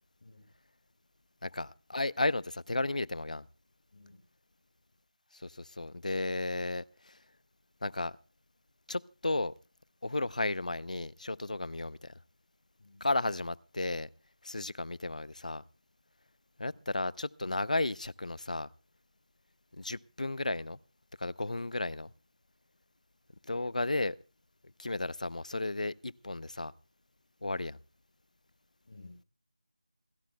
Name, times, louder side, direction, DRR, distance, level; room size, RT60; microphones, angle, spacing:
voice 1, 0.2-0.5 3.9-4.2 12.8-13.1 16.6-16.8 28.9-29.3, left 2 dB, 40° left, 6.6 m, -54 dB
voice 2, 1.4-3.4 5.3-7.2 7.8-8.2 8.9-9.5 10.0-12.1 13.0-14.1 14.4-15.6 16.6-18.7 19.7-20.8 21.2-22.1 23.4-24.2 24.8-26.7 27.4-27.8, left 2 dB, 80° left, 0.7 m, -34 dB
28.5 x 11.5 x 2.3 m
figure-of-eight pair, 175°, 4 cm